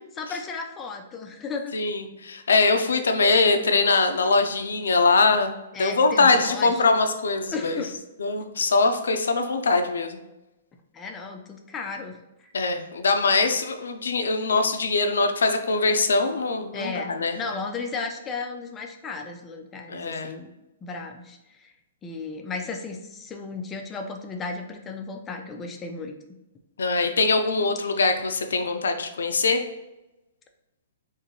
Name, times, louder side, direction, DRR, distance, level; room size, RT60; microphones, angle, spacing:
voice 1, 0.2-1.7 3.3-3.5 5.7-6.8 7.5-7.9 10.9-12.5 16.7-20.5 20.8-21.7 22.0-26.1 28.0-28.2, left 4 dB, 15° left, 3 dB, 0.4 m, -35 dB
voice 2, 1.7-7.8 8.2-10.2 12.5-17.4 19.9-20.3 26.8-29.6, left 3 dB, 90° left, 6 dB, 0.4 m, -22 dB
3.7 x 2.6 x 2.9 m, 0.98 s
hypercardioid pair, 145°, 0 cm